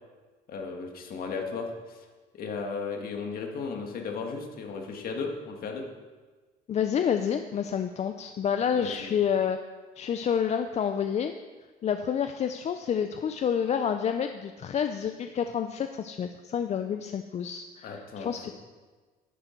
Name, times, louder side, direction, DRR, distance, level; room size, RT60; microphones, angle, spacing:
voice 1, 0.5-2.1 2.3-5.8 8.7-9.1 17.8-18.3, left 4 dB, 60° left, 2 dB, 1.8 m, -35 dB
voice 2, 6.7-9.6 10.0-11.3 11.8-18.5, left 8 dB, 40° left, 7 dB, 0.5 m, -29 dB
11.0 x 8.9 x 4.5 m, 1.4 s
cardioid pair, 110°, 17 cm